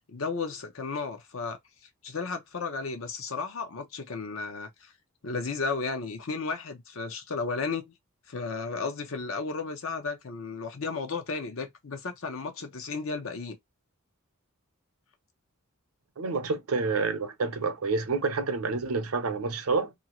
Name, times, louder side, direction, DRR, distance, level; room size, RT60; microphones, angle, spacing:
voice 1, 0.1-1.6 2.0-4.9 5.2-7.9 8.3-13.6, left 4 dB, 70° left, 0.7 m, -34 dB
voice 2, 16.2-19.9, right 4 dB, 85° right, 0.6 m, -28 dB
2.6 x 2.4 x 2.9 m
head